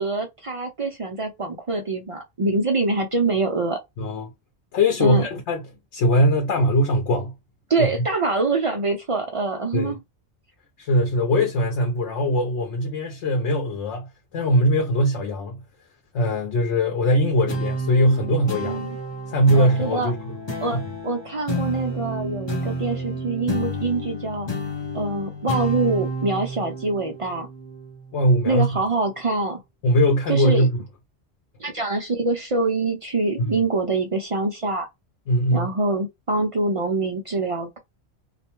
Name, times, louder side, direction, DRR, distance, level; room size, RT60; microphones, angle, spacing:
voice 1, 0.0-3.8 5.0-5.3 7.7-10.0 18.6-19.0 19.5-20.1 20.6-20.8 21.0-24.5 24.9-27.5 28.4-29.6 30.3-30.7 31.6-34.9 35.5-37.8, right 3 dB, 50° right, 0.4 m, -25 dB
voice 2, 4.0-4.3 4.7-5.6 5.9-7.3 7.8-7.9 9.7-10.0 10.8-15.6 16.1-18.8 19.3-20.2 20.7-20.8 28.1-28.8 29.8-30.7 33.4-33.6 35.3-35.7, equal, 85° left, 1.0 m, -21 dB
sound 1, 17.5-28.3, equal, 30° left, 0.7 m, -30 dB
2.4 x 2.2 x 2.9 m
omnidirectional pair, 1.1 m